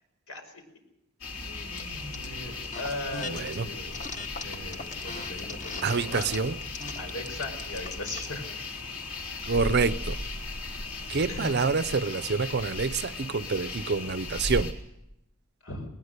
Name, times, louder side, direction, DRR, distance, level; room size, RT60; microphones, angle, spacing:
sound 1, 1.2-14.7, left 3 dB, 65° left, 4.1 m, -37 dB
voice 1, 1.4-3.9 4.4-6.3 7.0-8.6 11.3-11.8 15.6-15.9, left 2 dB, 80° left, 5.3 m, -38 dB
sound 2, 1.8-2.3 2.6-3.6 3.9-8.3, left 3 dB, 35° left, 1.4 m, -39 dB
voice 2, 3.3-3.7 5.8-6.6 9.5-10.2 11.1-14.7, right 4 dB, 50° right, 0.7 m, -27 dB
20.5 x 19.5 x 6.7 m
head